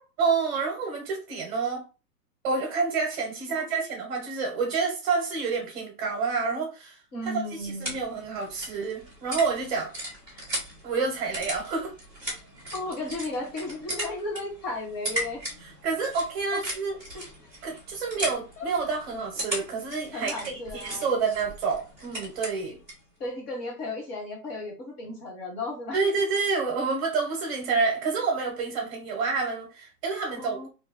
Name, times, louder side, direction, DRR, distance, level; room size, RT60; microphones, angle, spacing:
voice 1, 0.2-1.8 2.4-7.3 7.6-9.9 10.8-11.9 15.6-17.0 17.6-22.8 25.9-30.7, right 4 dB, 30° right, 0.9 m, -28 dB
voice 2, 3.5-3.9 7.1-8.0 9.7-9.8 12.7-15.4 16.5-16.6 17.1-17.3 18.6-18.7 20.1-21.1 23.2-26.0 30.4-30.7, left 2 dB, 35° left, 1.6 m, -35 dB
sound 1, 7.2-23.1, right 1 dB, 5° left, 0.4 m, -38 dB
2.6 x 2.1 x 4.0 m
hypercardioid pair, 145°, 48 cm